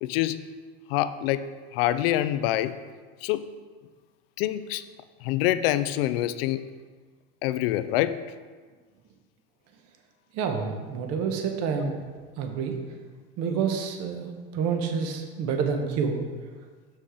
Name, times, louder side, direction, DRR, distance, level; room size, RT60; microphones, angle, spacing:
voice 1, 0.0-0.4 0.9-1.5 1.7-2.8 3.2-3.5 4.4-4.9 5.2-6.6 7.4-8.2, left 13 dB, 80° left, 13 dB, 0.5 m, -26 dB
voice 2, 10.3-11.9 12.4-12.8 13.4-16.2, right 6 dB, 55° right, 4 dB, 1.1 m, -28 dB
6.5 x 6.1 x 3.8 m, 1.5 s
supercardioid pair, 120°, 29 cm